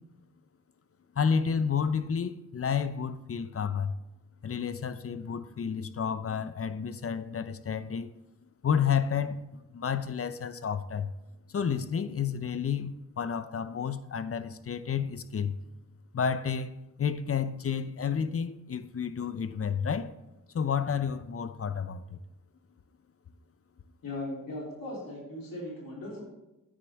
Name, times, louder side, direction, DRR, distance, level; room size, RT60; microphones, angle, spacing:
voice 1, 1.2-3.9 4.4-8.1 8.6-11.1 11.5-15.6 16.1-16.7 17.0-20.1 20.5-22.2, left 7 dB, 45° left, 0.6 m, -30 dB
voice 2, 24.0-26.2, left 1 dB, 85° left, 3.3 m, -38 dB
10.0 x 9.1 x 3.5 m
cardioid pair, 65°, 33 cm